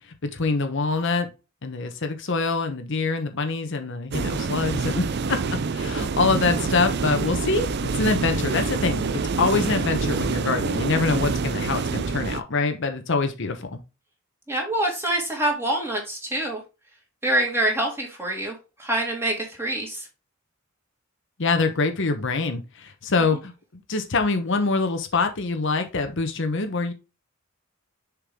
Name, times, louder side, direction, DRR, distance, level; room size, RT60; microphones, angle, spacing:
voice 1, 0.3-1.3 1.6-5.0 5.3-13.8 21.4-26.9, left 3 dB, 65° left, 6 dB, 1.0 m, -25 dB
sound 1, 4.1-12.4, right 4 dB, 55° right, 0.5 m, -26 dB
voice 2, 14.5-16.6 17.2-20.1, right 1 dB, 10° right, 0 dB, 2.7 m, -25 dB
6.8 x 4.7 x 3.6 m, 0.28 s
head